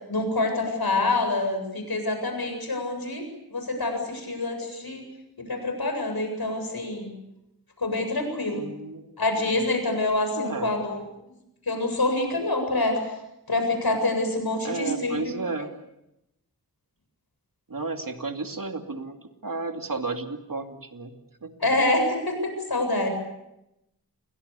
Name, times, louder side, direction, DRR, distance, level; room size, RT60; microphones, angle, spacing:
voice 1, 0.1-3.2 3.5-5.0 5.5-7.1 7.8-8.7 9.2-11.0 11.7-13.0 13.5-15.3 21.6-23.1, left 2 dB, 75° left, 5 dB, 7.8 m, -26 dB
voice 2, 8.5-9.1 9.4-9.6 10.3-10.7 14.6-15.7 17.7-19.2 19.4-21.1 21.4-21.5, right 3 dB, 60° right, 5 dB, 2.6 m, -32 dB
29.5 x 23.0 x 7.0 m, 0.88 s
wide cardioid pair, 70°, 37 cm